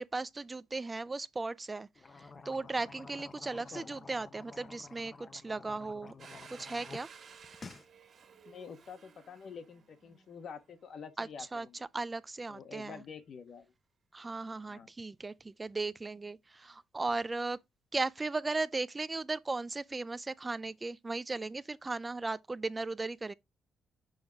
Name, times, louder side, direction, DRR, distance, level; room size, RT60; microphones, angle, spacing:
voice 1, 0.0-1.9 2.2-6.1 6.5-7.1 11.2-11.7 11.9-13.0 14.1-17.6 17.9-23.3, right 3 dB, 20° right, 0.4 m, -37 dB
sound 1, 1.9-7.0 7.3-7.9, left 4 dB, 35° left, 0.8 m, -51 dB
Domestic sounds home sounds, 6.2-10.8, right 6 dB, 55° right, 1.8 m, -55 dB
voice 2, 8.4-11.9 12.5-13.7 14.7-14.9, left 6 dB, 60° left, 1.3 m, -48 dB
6.3 x 4.7 x 3.5 m
cardioid pair, 90°, 0 cm